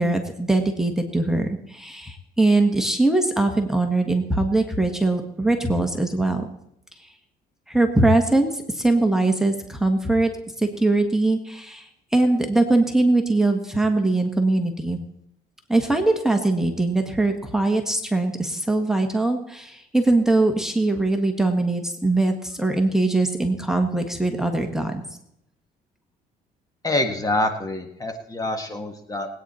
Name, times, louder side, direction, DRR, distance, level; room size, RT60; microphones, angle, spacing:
voice 1, 0.0-6.5 7.7-10.3 10.6-15.0 15.7-25.0, right 2 dB, 5° right, 4 dB, 1.5 m, -21 dB
voice 2, 26.8-29.3, left 1 dB, 20° left, 5 dB, 1.6 m, -26 dB
20.0 x 9.2 x 4.3 m, 0.77 s
cardioid pair, 110°, 17 cm